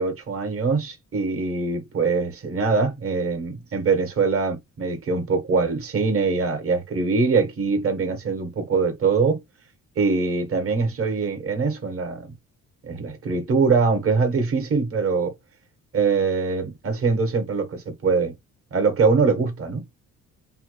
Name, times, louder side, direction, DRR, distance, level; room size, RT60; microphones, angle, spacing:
voice 1, 0.0-9.4 10.0-12.3 12.8-15.3 15.9-18.3 18.7-19.8, right 4 dB, 50° right, 1.2 m, -23 dB
2.9 x 2.2 x 3.0 m
cardioid pair, 90°, 30 cm